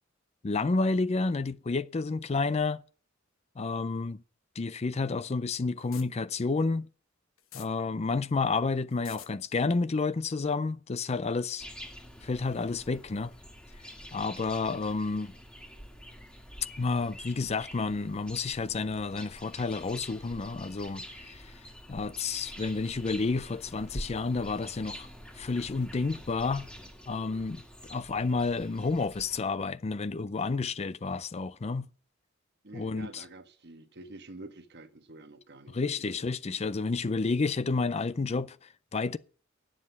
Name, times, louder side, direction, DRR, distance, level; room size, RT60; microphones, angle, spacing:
voice 1, 0.4-2.8 3.6-4.2 4.6-6.9 7.5-11.6 12.2-13.3 14.1-15.3 16.8-21.6 21.9-25.1 25.3-26.6 27.1-27.6 27.9-31.9 32.7-33.2 35.7-39.2, left 4 dB, 30° left, 0.5 m, -30 dB
sound 1, 5.8-6.1 7.4-7.7 8.9-9.3, left 10 dB, 85° left, 1.2 m, -45 dB
sound 2, 11.6-29.4, equal, 5° left, 1.8 m, -46 dB
voice 2, 32.6-36.3, right 2 dB, 55° right, 1.3 m, -48 dB
9.8 x 7.6 x 8.2 m
head